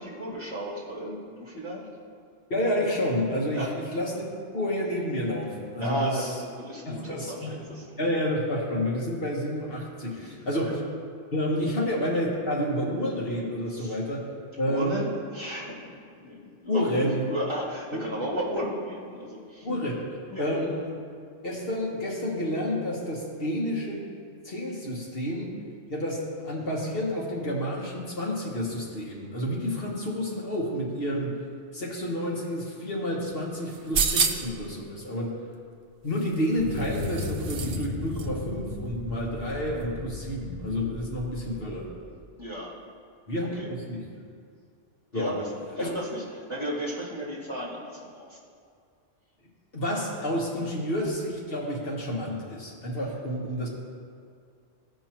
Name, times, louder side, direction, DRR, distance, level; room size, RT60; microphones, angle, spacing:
voice 1, 0.0-1.8 3.6-3.7 5.8-7.9 10.1-10.3 10.6-10.7 11.6-11.7 13.7-14.0 14.6-15.8 16.2-19.7 20.3-20.6 42.4-42.7 43.6-43.7 45.1-45.5 45.8-48.4, equal, 25° right, -6 dB, 1.8 m, -34 dB
voice 2, 2.5-6.3 6.8-7.6 8.0-10.8 11.3-14.3 14.6-15.1 16.7-17.3 17.9-18.0 19.6-21.0 21.4-24.1 24.4-25.6 25.9-31.4 31.7-35.4 36.0-41.9 43.3-43.6 43.9-44.1 45.1-45.4 45.8-45.9 49.7-53.7, equal, 55° left, -3 dB, 1.5 m, -29 dB
sound 1, 33.7-34.6 36.1-37.9 38.1-38.3, right 5 dB, 60° right, 0.9 m, -29 dB
sound 2, 36.6-42.3, left 2 dB, 25° left, 1.2 m, -36 dB
15.5 x 5.4 x 3.0 m, 2.3 s
omnidirectional pair, 1.2 m